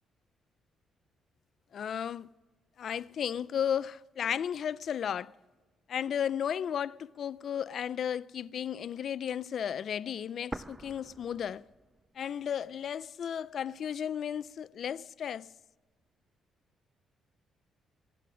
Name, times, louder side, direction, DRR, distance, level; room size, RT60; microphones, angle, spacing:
voice 1, 1.7-2.3 2.8-5.3 5.9-11.6 12.2-15.5, left 8 dB, 60° left, 0.4 m, -34 dB
sound 1, 10.5-12.5 12.7-12.8 13.6-14.5, right 2 dB, 15° right, 0.3 m, -45 dB
21.0 x 8.5 x 5.0 m
cardioid pair, 90°, 0 cm